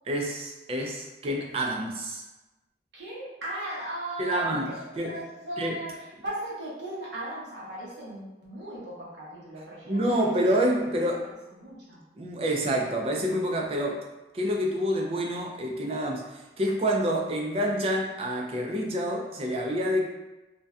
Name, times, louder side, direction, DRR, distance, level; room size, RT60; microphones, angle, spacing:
voice 1, 0.1-2.2 4.2-5.2 5.6-5.8 9.9-11.3 12.2-14.0 14.3-20.1, equal, 35° right, 1 dB, 0.3 m, -28 dB
voice 2, 2.9-10.7 11.0-11.2 11.6-12.0, right 1 dB, 90° right, -6 dB, 0.8 m, -38 dB
2.6 x 2.2 x 2.3 m, 1.1 s
head